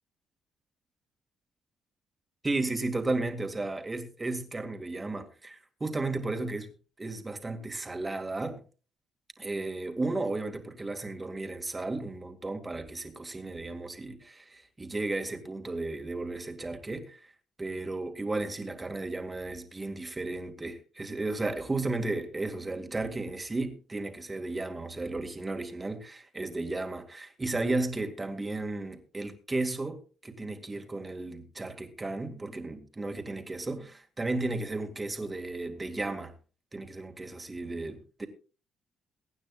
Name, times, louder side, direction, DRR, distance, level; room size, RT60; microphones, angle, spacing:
voice 1, 2.4-6.7 7.0-8.6 9.4-17.3 17.6-36.3 36.7-38.3, right 2 dB, 20° right, 2.1 m, -34 dB
23.0 x 9.4 x 2.4 m
cardioid pair, 90°, 0 cm